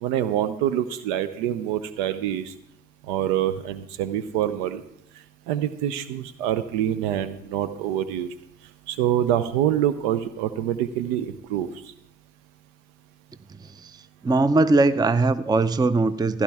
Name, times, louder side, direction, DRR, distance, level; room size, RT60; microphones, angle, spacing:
voice 1, 0.0-2.5 3.1-4.8 5.5-8.3 8.9-11.7, right 11 dB, 75° right, 14 dB, 0.7 m, -25 dB
voice 2, 13.6-16.4, right 3 dB, 10° right, 15 dB, 0.5 m, -21 dB
15.5 x 10.5 x 3.5 m, 0.76 s
hypercardioid pair, 55°, 36 cm